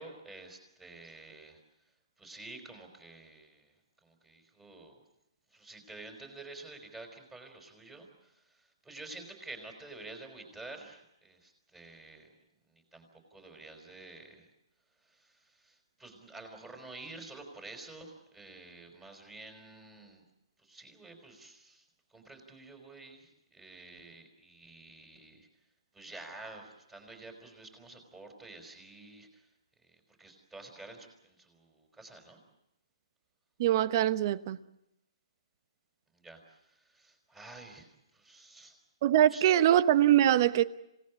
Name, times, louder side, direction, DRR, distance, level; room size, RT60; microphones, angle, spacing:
voice 1, 0.0-3.8 4.0-5.0 5.5-14.5 15.0-20.2 20.6-25.5 25.9-29.5 29.8-32.4 36.1-38.8 39.3-39.6, right 2 dB, 10° right, 4.9 m, -50 dB
voice 2, 33.6-34.6 39.0-40.6, right 11 dB, 40° right, 1.0 m, -23 dB
27.5 x 18.5 x 8.4 m
hypercardioid pair, 145°, 3 cm